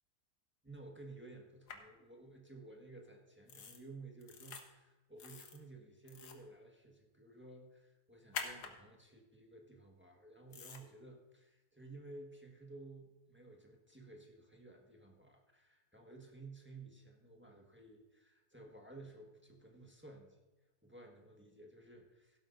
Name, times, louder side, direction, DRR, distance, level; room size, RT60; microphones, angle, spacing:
voice 1, 0.6-20.4 20.8-22.4, right 2 dB, 10° right, 1 dB, 1.2 m, -55 dB
sound 1, 1.7-1.8 3.5-3.8 4.2-4.6 5.2-5.6 6.0-6.4 8.3-8.7 10.5-10.8, left 6 dB, 85° left, 1.7 m, -45 dB
16.5 x 12.0 x 2.6 m, 1.1 s
omnidirectional pair, 1.7 m